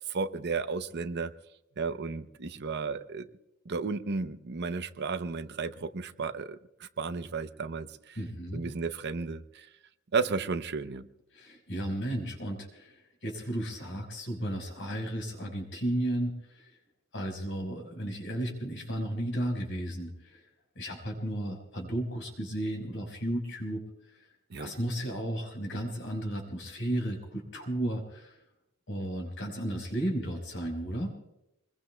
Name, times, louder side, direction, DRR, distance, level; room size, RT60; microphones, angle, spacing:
voice 1, 0.0-1.3 1.8-3.3 3.6-8.2 8.5-9.7 10.1-11.1 24.5-24.7, right 4 dB, 55° right, 11 dB, 0.7 m, -33 dB
voice 2, 8.2-8.6 11.3-16.7 17.1-20.4 20.7-24.3 24.6-28.4 28.9-31.1, right 1 dB, 60° left, 3 dB, 4.8 m, -34 dB
27.0 x 21.0 x 2.2 m, 0.85 s
head